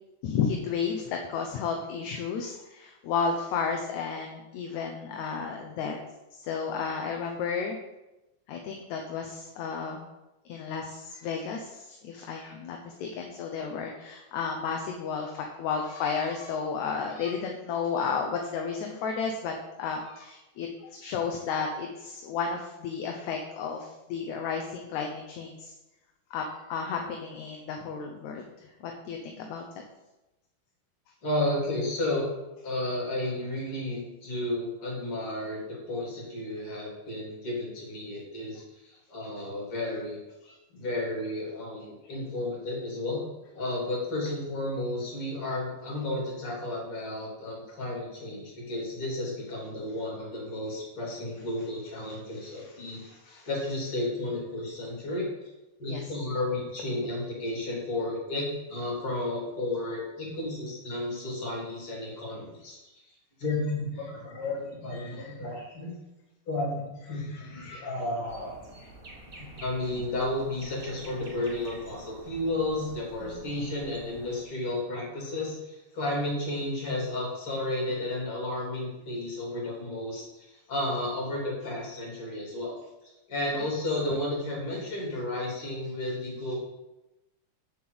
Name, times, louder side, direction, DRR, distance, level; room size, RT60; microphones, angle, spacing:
voice 1, 0.2-6.0 6.3-7.8 8.5-10.0 10.5-25.7 26.3-29.6 40.4-40.6 52.9-53.5 55.9-56.0 65.0-65.3 67.5-67.9 68.8-68.9 73.2-73.5, left 6 dB, 75° left, 2 dB, 2.2 m, -33 dB
voice 2, 31.2-32.3 32.6-40.2 40.7-43.2 43.5-55.3 55.8-62.8 63.4-65.9 66.5-68.5 69.4-82.8 83.0-86.5, left 1 dB, 45° left, -3 dB, 4.2 m, -32 dB
sound 1, 68.3-74.4, right 2 dB, 35° right, 0.8 m, -49 dB
7.4 x 6.1 x 7.8 m, 1.0 s
omnidirectional pair, 3.5 m